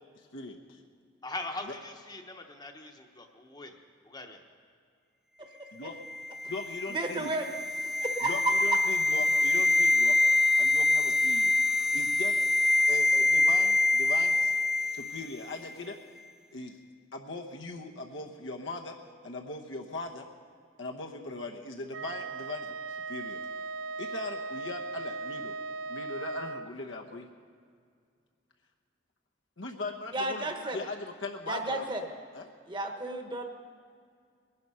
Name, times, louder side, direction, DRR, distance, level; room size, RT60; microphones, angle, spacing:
voice 1, 0.1-0.8 1.6-1.7 5.7-5.9 6.5-7.3 8.2-10.2 10.6-11.5 11.9-12.4 12.9-14.5 14.9-16.0 16.5-16.8 17.1-18.9 19.2-20.3 20.8-23.4 24.0-25.5 25.9-27.3 29.6-31.8 32.3-32.5, left 2 dB, 75° left, 1 dB, 1.0 m, -40 dB
voice 2, 1.2-3.8 4.0-4.4, left 2 dB, 20° left, 4 dB, 1.0 m, -41 dB
voice 3, 5.4-5.9 6.9-7.5 7.8-8.8 30.1-30.8 31.5-32.0 32.7-33.4, right 2 dB, 25° right, 4 dB, 1.2 m, -33 dB
sound 1, 6.0-15.3 15.5-15.7, left 2 dB, ahead, 0.5 m, -25 dB
Wind instrument woodwind instrument, 21.9-26.7, right 3 dB, 75° right, 0.4 m, -38 dB
20.5 x 11.0 x 5.6 m, 2.2 s
head